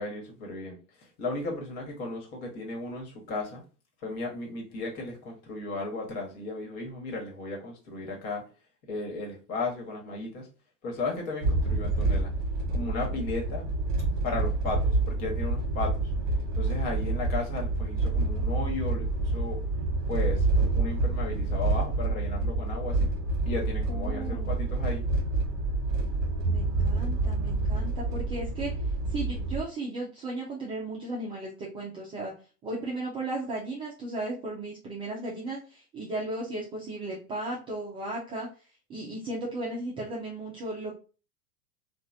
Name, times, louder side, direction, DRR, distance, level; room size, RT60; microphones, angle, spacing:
voice 1, 0.0-3.6 4.0-8.4 8.9-10.5 10.8-12.3 12.7-13.7 14.2-16.1 16.5-19.6 20.1-23.1 23.5-25.1, left 2 dB, 50° left, 1.4 m, -35 dB
sound 1, 11.4-29.6, right 2 dB, 35° right, 1.1 m, -28 dB
voice 2, 23.9-24.5 26.4-28.7 29.1-32.3 32.6-38.5 38.9-40.9, right 2 dB, 15° right, 0.3 m, -35 dB
3.0 x 2.4 x 2.5 m
hypercardioid pair, 95°, 47 cm